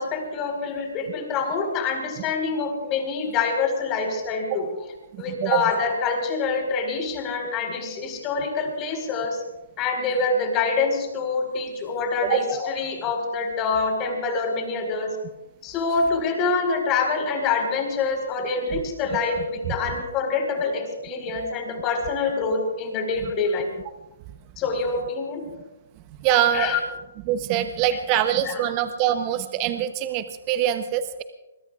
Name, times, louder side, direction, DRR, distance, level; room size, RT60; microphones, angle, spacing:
voice 1, 0.0-4.7 5.2-9.4 9.8-15.1 15.6-23.7 24.6-25.4 26.5-26.8 28.1-28.6, left 4 dB, 25° left, 3 dB, 4.6 m, -26 dB
voice 2, 5.1-5.6 12.2-12.4 19.7-19.8 23.2-23.3 26.2-26.7 27.3-31.2, right 11 dB, 35° right, 10 dB, 0.9 m, -24 dB
25.0 x 22.5 x 2.5 m, 0.98 s
hypercardioid pair, 135°, 0 cm